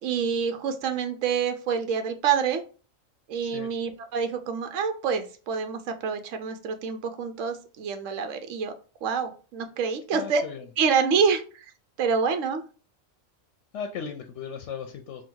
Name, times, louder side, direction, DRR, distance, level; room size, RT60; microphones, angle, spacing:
voice 1, 0.0-2.6 3.3-8.7 9.0-10.4 10.8-11.4 12.0-12.6, right 6 dB, 75° right, 7 dB, 1.0 m, -27 dB
voice 2, 10.1-10.6 13.7-15.2, left 6 dB, 65° left, 5 dB, 0.8 m, -36 dB
3.8 x 2.2 x 4.5 m, 0.36 s
omnidirectional pair, 1.4 m